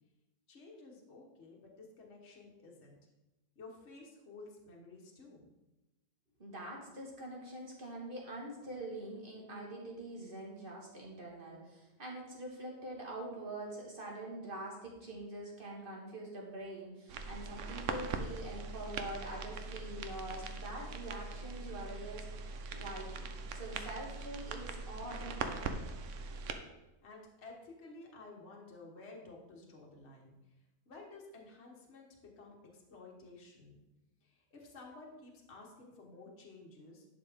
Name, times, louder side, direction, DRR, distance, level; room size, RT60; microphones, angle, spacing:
voice 1, 0.5-3.0 3.5-5.5 27.0-30.3 30.9-33.8 34.2-37.0, left 3 dB, 50° left, -1 dB, 1.5 m, -53 dB
voice 2, 6.4-25.8, right 1 dB, 35° right, -2 dB, 1.8 m, -45 dB
sound 1, 17.1-26.5, right 4 dB, 65° right, 0.9 m, -41 dB
10.5 x 4.7 x 3.5 m, 1.0 s
omnidirectional pair, 1.6 m